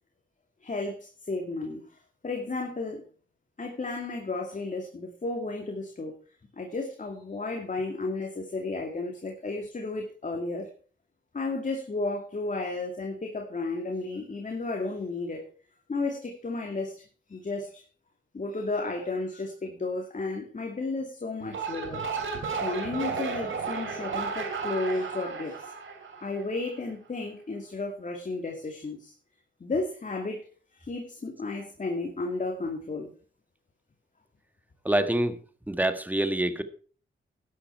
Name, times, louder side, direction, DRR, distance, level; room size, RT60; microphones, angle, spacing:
voice 1, 0.6-3.0 3.6-6.1 6.5-10.7 11.3-15.4 15.9-17.0 17.3-17.8 18.3-22.0 22.6-25.7 26.2-29.1 29.6-30.4 30.7-33.1, left 3 dB, 40° left, 2 dB, 2.5 m, -33 dB
sound 1, 21.4-26.7, right 5 dB, 80° right, 2.9 m, -33 dB
voice 2, 34.9-35.4 35.7-36.6, right 1 dB, 10° right, 9 dB, 1.6 m, -26 dB
13.0 x 9.9 x 4.6 m, 0.40 s
cardioid pair, 65°, 20 cm